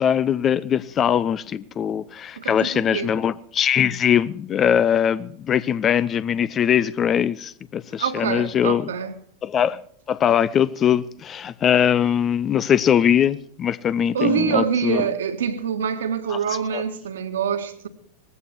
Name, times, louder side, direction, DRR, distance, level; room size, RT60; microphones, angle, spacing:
voice 1, 0.0-8.9 9.4-9.8 10.1-15.1 16.3-16.4 16.7-16.8, left 9 dB, 25° left, 0.6 m, -21 dB
voice 2, 2.4-3.1 8.0-9.1 14.1-17.9, right 7 dB, 65° right, 1.8 m, -25 dB
19.5 x 15.0 x 4.6 m
figure-of-eight pair, 90°, 0 cm